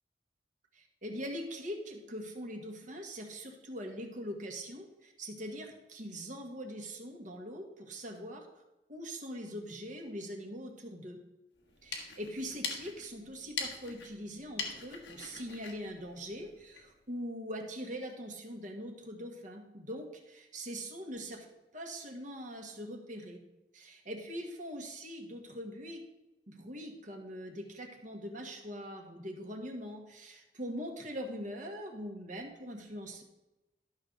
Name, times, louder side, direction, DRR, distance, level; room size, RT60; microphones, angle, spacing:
voice 1, 0.7-8.6 8.9-11.2 11.8-21.5 21.7-23.4 23.7-26.0 26.5-33.2, equal, 45° right, 2 dB, 1.5 m, -42 dB
sound 1, 11.6-16.9, left 4 dB, 90° left, 1.6 m, -43 dB
12.0 x 6.2 x 3.9 m, 0.99 s
head